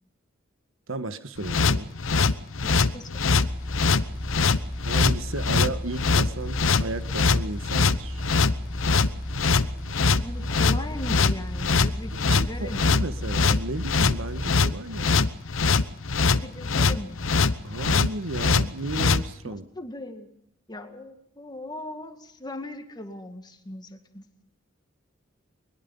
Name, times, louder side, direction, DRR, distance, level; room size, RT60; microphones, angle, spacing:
voice 1, 0.9-1.9 4.8-8.2 11.6-11.7 12.1-15.3 17.6-19.6, right 2 dB, 85° right, 12 dB, 1.4 m, -34 dB
sound 1, 1.4-19.2, left 4 dB, 80° left, 0.9 m, -22 dB
voice 2, 2.6-3.3 10.2-12.9 16.2-17.2 19.4-20.3 20.7-24.2, left 1 dB, 20° left, 6 dB, 2.0 m, -38 dB
sound 2, 3.2-14.5, left 1 dB, 10° right, 1.2 m, -34 dB
22.5 x 21.5 x 5.4 m, 0.73 s
head